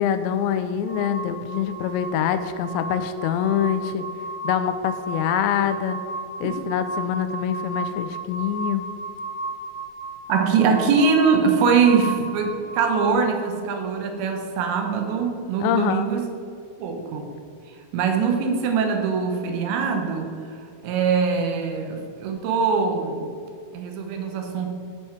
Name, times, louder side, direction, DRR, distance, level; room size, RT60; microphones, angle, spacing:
voice 1, 0.0-4.0 4.4-6.0 6.4-8.9 15.6-16.1, left 9 dB, 85° left, 10 dB, 2.8 m, -25 dB
sound 1, 0.9-13.1, right 3 dB, 45° left, 1.7 m, -34 dB
voice 2, 10.3-16.3 16.8-17.3 17.9-20.3 20.8-23.3 23.7-24.7, right 5 dB, 80° right, 4 dB, 3.3 m, -22 dB
13.0 x 5.8 x 4.5 m, 2.5 s
omnidirectional pair, 5.1 m